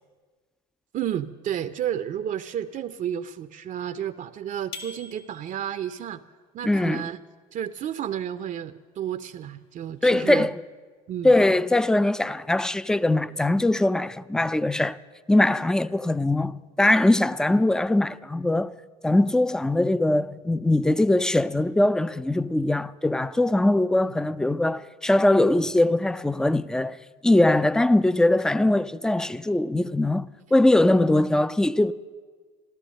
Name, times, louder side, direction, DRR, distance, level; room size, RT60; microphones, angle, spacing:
voice 1, 0.9-6.2 6.5-7.2 7.5-10.5 11.1-11.4 24.0-24.1, right 10 dB, 45° right, 0.6 m, -31 dB
sound 1, 4.7-5.8, left 4 dB, 65° left, 1.9 m, -42 dB
voice 2, 6.6-7.1 10.0-10.6 11.2-15.0 15.3-18.7 19.0-27.0 27.2-31.9, left 1 dB, 5° left, 0.4 m, -21 dB
15.0 x 12.5 x 6.4 m
hypercardioid pair, 75°, 19 cm